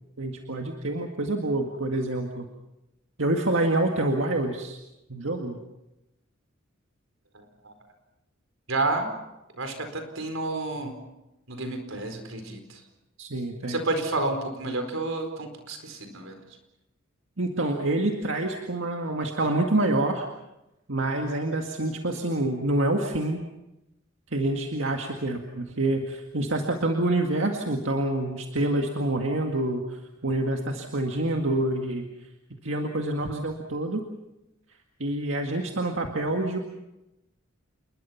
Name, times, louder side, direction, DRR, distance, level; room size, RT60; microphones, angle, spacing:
voice 1, 0.2-2.5 3.2-4.8 5.1-5.6 13.2-13.8 17.4-20.3 20.9-23.4 24.3-32.1 32.5-34.0 35.0-36.6, right 2 dB, 70° right, 2 dB, 2.0 m, -27 dB
voice 2, 7.3-7.7 8.7-9.1 9.5-10.9 11.5-12.8 13.7-16.4, right 2 dB, 90° right, 6 dB, 4.6 m, -30 dB
28.5 x 21.5 x 5.9 m, 0.93 s
head